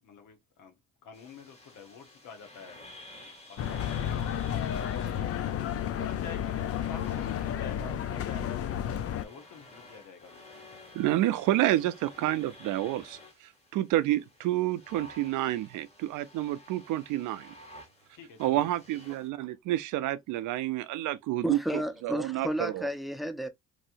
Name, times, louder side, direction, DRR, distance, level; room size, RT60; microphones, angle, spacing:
voice 1, 0.0-2.9 3.1-4.3 4.9-10.5 18.1-18.7, left 5 dB, 85° left, 1.1 m, -48 dB
sound 1, 1.1-19.3, left 1 dB, 20° left, 1.4 m, -52 dB
sound 2, 3.6-9.3, left 10 dB, 50° left, 0.5 m, -32 dB
voice 2, 10.9-13.2 13.7-17.5 18.4-21.6 22.0-22.9, right 14 dB, 90° right, 0.5 m, -29 dB
voice 3, 21.4-23.5, equal, ahead, 0.6 m, -32 dB
3.2 x 2.7 x 2.5 m
cardioid pair, 90°, 30 cm